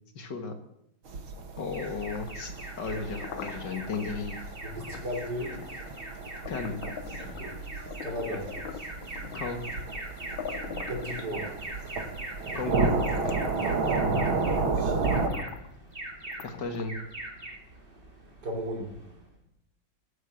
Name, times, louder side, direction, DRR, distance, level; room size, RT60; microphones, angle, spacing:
voice 1, 0.2-0.5 1.6-4.4 4.8-4.9 6.5-6.8 9.3-9.6 12.5-12.9 16.4-17.0, left 4 dB, 60° left, 6 dB, 2.2 m, -34 dB
sound 1, 1.1-15.3, right 4 dB, 80° right, 2.7 m, -32 dB
Alarm, 1.7-19.3, right 1 dB, 25° right, 3.9 m, -42 dB
sound 2, 1.9-4.0 4.9-5.1 5.5-7.6 7.9-9.5 10.1-10.2 10.4-11.9 12.5-12.6 13.0-14.2 14.6-15.7 16.3-17.1, left 7 dB, 75° left, 1.8 m, -42 dB
voice 2, 4.6-5.6 7.2-7.6 8.0-8.5 10.9-11.5 14.1-15.2 18.4-18.9, equal, 55° right, 2 dB, 3.6 m, -36 dB
14.0 x 10.5 x 7.8 m, 0.78 s
omnidirectional pair, 2.2 m